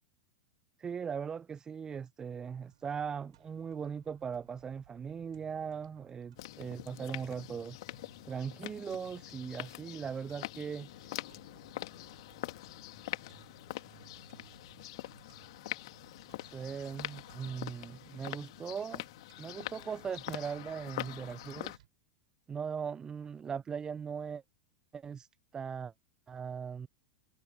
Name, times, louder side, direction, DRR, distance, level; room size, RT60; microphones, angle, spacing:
voice 1, 0.8-7.8 8.3-10.9 16.4-19.0 19.4-21.8 22.5-24.4 24.9-25.3 25.5-25.9 26.3-26.9, right 7 dB, 20° right, 0.7 m, -39 dB
sound 1, 2.4-21.9, right 13 dB, 60° right, 5.8 m, -62 dB
sound 2, 6.4-21.8, left 18 dB, 55° left, 2.8 m, -44 dB
figure-of-eight pair, 90°, 4 cm